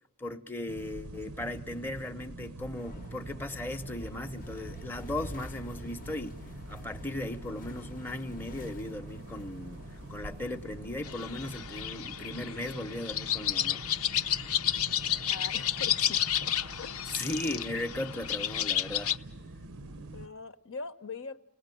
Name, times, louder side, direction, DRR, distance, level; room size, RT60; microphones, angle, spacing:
voice 1, 0.2-6.4 6.7-9.8 10.1-13.8 17.1-19.2, left 1 dB, 10° left, 0.8 m, -37 dB
sound 1, 0.7-20.3, right 2 dB, 80° right, 0.8 m, -45 dB
sound 2, 2.7-12.0, left 1 dB, 40° left, 0.8 m, -48 dB
sound 3, 11.0-19.2, left 10 dB, 90° left, 0.8 m, -31 dB
voice 2, 15.3-17.0 20.1-21.4, left 4 dB, 65° left, 0.9 m, -42 dB
30.0 x 18.5 x 9.1 m
head